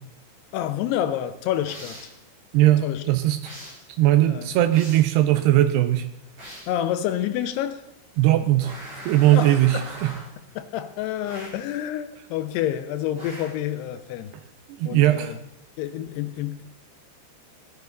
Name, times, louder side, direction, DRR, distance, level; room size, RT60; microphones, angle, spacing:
voice 1, 0.5-2.1 2.8-3.0 4.3-4.5 6.7-7.8 9.3-9.9 10.6-14.3 14.8-15.4 15.8-16.6, left 11 dB, 80° left, 2.4 m, -28 dB
sound 1, 1.7-2.2 3.4-3.9 4.7-5.2 6.4-6.8 8.6-10.4 11.3-11.7 13.2-13.7, equal, 30° right, 5.9 m, -41 dB
voice 2, 2.5-3.4 4.0-6.1 8.2-8.8 9.1-10.2 14.8-15.3, right 14 dB, 90° right, 2.4 m, -19 dB
17.0 x 10.5 x 3.8 m
omnidirectional pair, 5.4 m